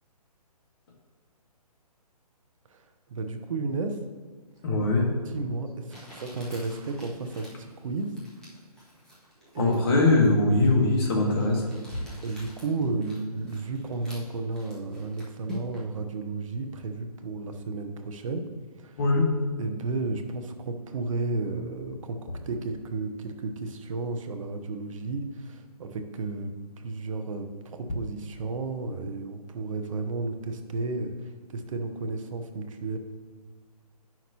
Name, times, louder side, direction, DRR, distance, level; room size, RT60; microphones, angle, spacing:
voice 1, 3.1-4.0 5.3-8.1 9.5-10.0 12.2-18.5 18.8-19.0 19.6-26.5 26.8-33.0, right 3 dB, 55° right, 6 dB, 0.9 m, -33 dB
voice 2, 4.6-5.1 9.5-11.7 19.0-19.3, left 2 dB, 40° left, -1 dB, 1.6 m, -21 dB
Crumpling crinkling, 5.0-5.1 5.9-16.0, equal, 5° left, 1.4 m, -47 dB
9.1 x 5.9 x 2.9 m, 1.5 s
hypercardioid pair, 145°, 20 cm